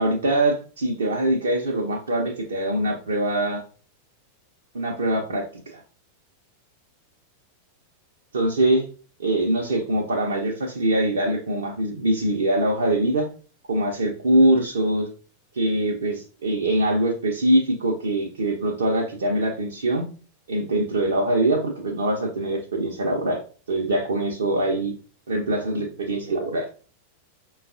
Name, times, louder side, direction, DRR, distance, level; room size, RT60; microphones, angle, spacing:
voice 1, 0.0-3.6 4.7-5.5 5.7-5.8 8.3-8.8 9.2-13.3 13.7-15.1 15.5-20.0 20.5-23.4 23.7-24.9 25.3-26.7, right 1 dB, 70° right, -1 dB, 0.6 m, -23 dB
5.1 x 2.3 x 2.4 m, 0.40 s
figure-of-eight pair, 90°, 0 cm